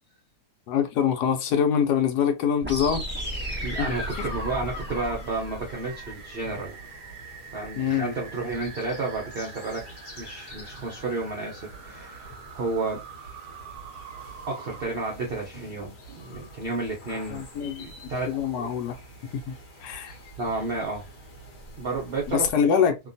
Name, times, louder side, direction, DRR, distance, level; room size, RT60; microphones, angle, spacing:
voice 1, 0.7-3.0 3.8-4.3 7.8-8.1 17.3-17.9 18.3-19.5 19.8-20.1 22.3-23.0, left 8 dB, 75° left, 1.1 m, -25 dB
sound 1, 2.6-6.6, right 1 dB, 10° right, 0.6 m, -34 dB
sound 2, 3.0-22.5, equal, 45° left, 0.9 m, -46 dB
voice 2, 3.6-6.8 7.5-9.9 10.2-13.1 13.5-13.6 14.5-18.7 19.9-21.1 21.8-22.5, right 3 dB, 65° right, 0.5 m, -32 dB
sound 3, 5.7-14.9, right 7 dB, 85° right, 1.2 m, -45 dB
2.9 x 2.2 x 2.5 m
omnidirectional pair, 1.8 m